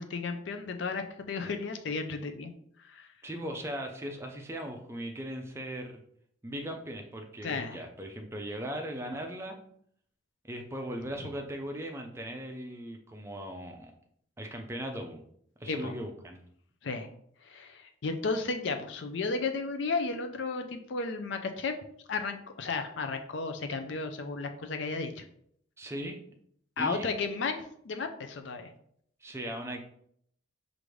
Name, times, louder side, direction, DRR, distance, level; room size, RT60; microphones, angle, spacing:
voice 1, 0.0-2.5 2.9-3.1 7.4-7.8 15.7-15.9 16.8-17.1 17.4-21.7 22.1-25.2 26.8-28.7, left 4 dB, 60° left, 7 dB, 0.4 m, -33 dB
voice 2, 3.2-6.0 6.4-9.6 10.4-13.9 14.4-15.2 15.6-16.4 25.8-26.2 26.8-27.1 29.2-29.8, equal, 15° right, 3 dB, 0.4 m, -38 dB
4.9 x 2.5 x 3.2 m, 0.67 s
head